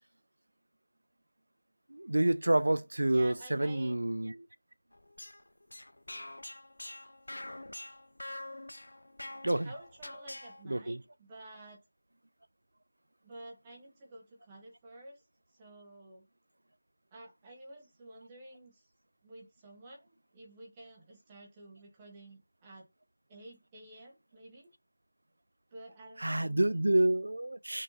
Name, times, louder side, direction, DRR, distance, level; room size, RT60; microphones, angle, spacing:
voice 1, 1.9-4.5 9.4-9.7 10.7-11.0 26.2-27.8, right 1 dB, 75° right, 0.3 m, -28 dB
voice 2, 3.1-4.0 9.6-11.8 13.2-15.2 15.6-16.3 17.1-18.8 19.2-20.1 20.3-22.9 23.3-24.7 25.7-26.6, right 1 dB, 10° right, 0.6 m, -51 dB
sound 1, 4.9-10.6, left 1 dB, 75° left, 0.6 m, -46 dB
5.2 x 3.6 x 2.7 m
figure-of-eight pair, 180°, 0 cm